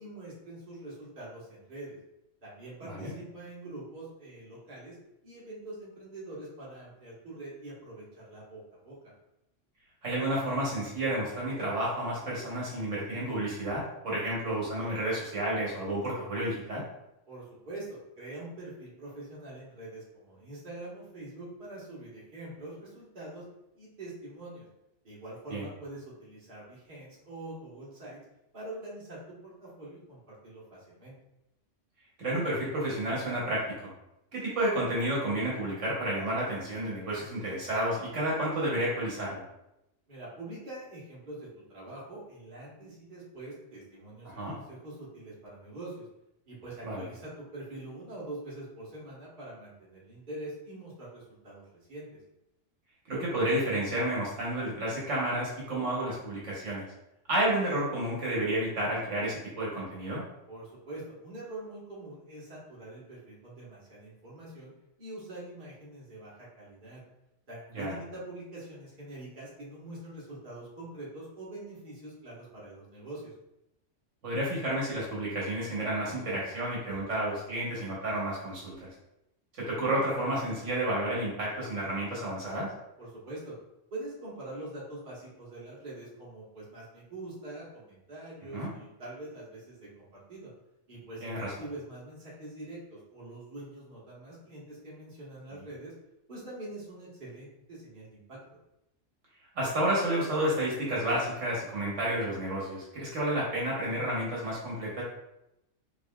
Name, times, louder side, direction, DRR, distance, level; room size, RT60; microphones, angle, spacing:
voice 1, 0.0-2.0 2.4-5.0 5.2-9.0 17.3-23.4 23.7-24.6 25.0-28.2 28.5-31.1 40.1-46.1 46.5-52.1 60.5-64.7 65.0-67.0 67.5-73.3 83.0-83.5 83.9-90.5 90.9-95.9 96.3-98.4, right 2 dB, 45° right, -7 dB, 1.3 m, -44 dB
voice 2, 2.8-3.1 10.0-16.8 25.5-25.7 32.2-33.9 34.3-39.4 44.2-44.5 46.8-47.0 53.1-56.9 57.3-60.2 67.7-67.9 74.2-78.9 79.6-82.7 88.5-88.7 91.2-91.5 99.5-105.0, right 1 dB, 70° right, -5 dB, 1.3 m, -31 dB
5.0 x 2.5 x 2.2 m, 0.87 s
omnidirectional pair, 1.3 m